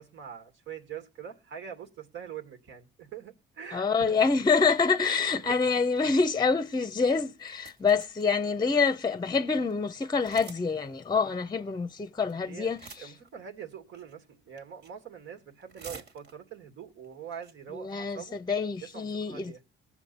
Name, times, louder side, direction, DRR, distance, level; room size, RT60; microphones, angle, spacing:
voice 1, 0.0-4.2 5.0-5.2 11.2-11.4 12.4-18.4 18.8-19.6, right 8 dB, 75° right, 2.3 m, -44 dB
voice 2, 3.7-13.1 17.7-19.5, left 5 dB, 20° left, 0.6 m, -26 dB
sound 1, 7.4-8.3 8.9-9.0 9.2-9.3 9.6-9.7 10.2-10.7 10.9-11.0 12.0-12.3 12.6-13.3 13.9-14.2 14.6-15.0 15.4-16.6 17.0-17.1 17.3-17.5 17.9-18.1, right 4 dB, 60° right, 2.0 m, -48 dB
19.0 x 7.2 x 4.2 m
cardioid pair, 90°, 20 cm